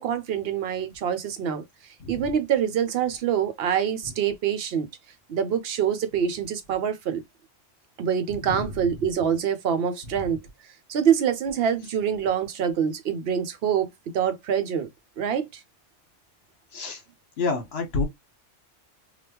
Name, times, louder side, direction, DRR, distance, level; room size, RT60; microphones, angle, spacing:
voice 1, 0.0-1.6 2.1-4.9 5.3-7.2 8.0-10.4 10.9-14.9 15.2-15.6, right 8 dB, 65° right, 0.7 m, -25 dB
voice 2, 17.4-18.0, left 3 dB, 60° left, 1.3 m, -28 dB
3.3 x 2.4 x 2.8 m
omnidirectional pair, 1.2 m